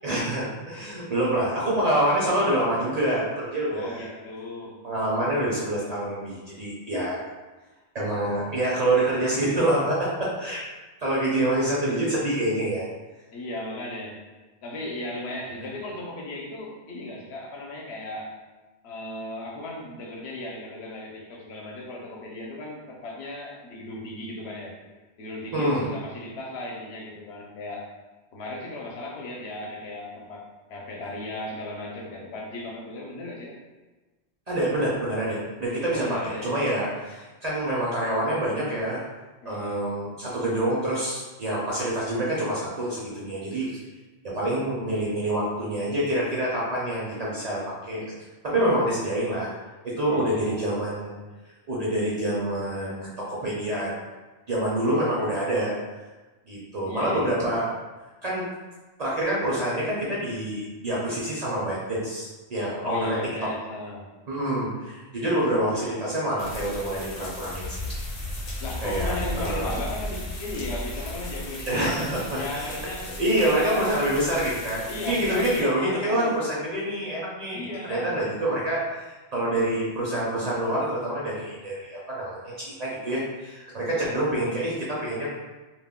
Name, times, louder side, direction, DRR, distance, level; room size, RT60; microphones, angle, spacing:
voice 1, 0.0-4.1 4.8-7.2 7.9-10.6 11.0-12.9 25.5-25.9 34.5-39.0 39.4-43.7 44.2-48.0 48.4-49.5 50.0-51.2 51.7-53.9 54.5-55.7 56.5-57.7 58.2-58.5 59.0-63.2 64.3-67.8 68.8-69.8 71.7-72.8 73.2-85.3, right 1 dB, 50° right, -6 dB, 0.5 m, -26 dB
voice 2, 3.7-4.8 13.3-14.2 14.6-18.3 18.8-24.8 25.2-27.9 28.3-33.6 35.9-36.5 39.4-39.8 50.0-50.8 56.9-57.3 62.8-64.1 68.6-72.0 72.3-74.2 74.9-76.4 77.5-78.1 83.9-84.1, left 1 dB, 75° left, -1 dB, 0.8 m, -36 dB
sound 1, 66.4-75.6, left 1 dB, 45° left, 0.6 m, -35 dB
2.4 x 2.1 x 3.5 m, 1.2 s
omnidirectional pair, 1.1 m